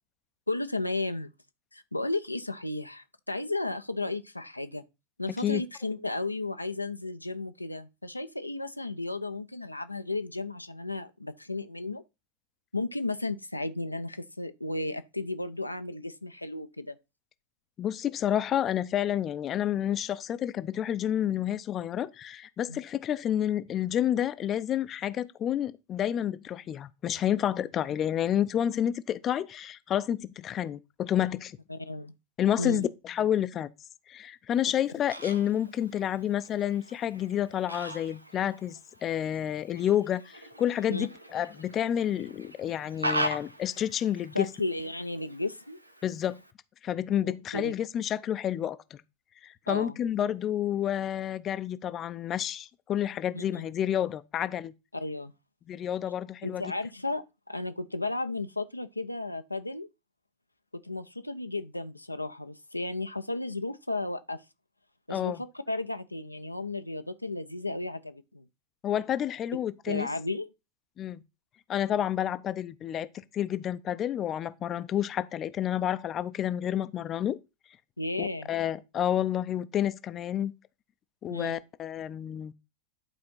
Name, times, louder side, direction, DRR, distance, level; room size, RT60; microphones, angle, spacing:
voice 1, 0.5-1.3 1.7-4.8 5.2-12.0 12.7-16.9 22.7-22.8 31.7-32.1 32.6-32.9 40.9-41.1 44.3-45.8 47.2-47.7 49.7-50.0 53.3-53.7 54.9-55.3 56.4-59.9 60.7-64.4 65.1-65.3 65.7-68.4 69.9-70.5 78.0-78.5 81.3-81.6, left 2 dB, 85° left, 0.7 m, -34 dB
voice 2, 17.8-31.6 32.4-33.7 34.1-44.5 46.0-46.4 46.8-48.8 49.4-54.7 55.7-56.6 65.1-65.4 68.8-70.1 71.0-71.2 71.7-77.4 78.2-80.5 81.2-82.5, left 10 dB, 30° left, 0.6 m, -29 dB
Fowl, 34.5-46.5, right 1 dB, 85° right, 0.8 m, -40 dB
11.0 x 4.3 x 5.6 m
figure-of-eight pair, 90°, 0 cm